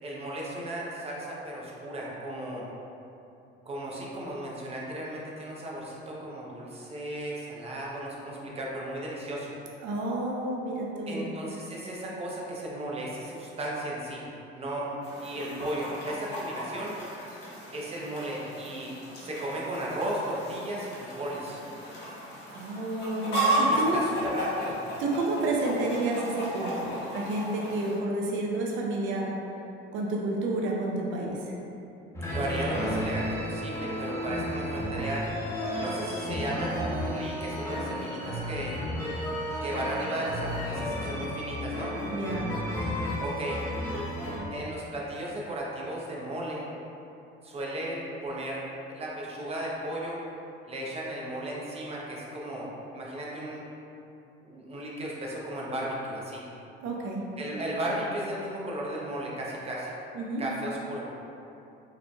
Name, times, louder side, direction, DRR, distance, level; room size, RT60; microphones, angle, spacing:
voice 1, 0.0-2.6 3.7-9.5 11.1-14.2 14.5-17.0 17.7-18.9 19.2-21.6 23.7-24.8 32.3-35.3 35.8-38.8 39.6-41.9 43.2-43.6 44.5-46.7 47.4-48.6 48.9-50.2 50.7-53.6 54.4-56.4 57.4-59.9 60.4-61.1, right 1 dB, 30° right, -4 dB, 0.7 m, -35 dB
voice 2, 9.8-11.3 22.5-24.0 25.0-29.3 29.9-31.5 42.1-42.5 56.8-57.2 60.1-60.4, right 2 dB, 65° right, -2 dB, 0.6 m, -30 dB
Chicken rooster, 15.0-28.0, right 1 dB, 55° left, 1.3 m, -34 dB
sound 1, 32.1-44.4, equal, 15° left, 1.1 m, -33 dB
4.7 x 3.1 x 2.3 m, 2.9 s
cardioid pair, 115°, 21 cm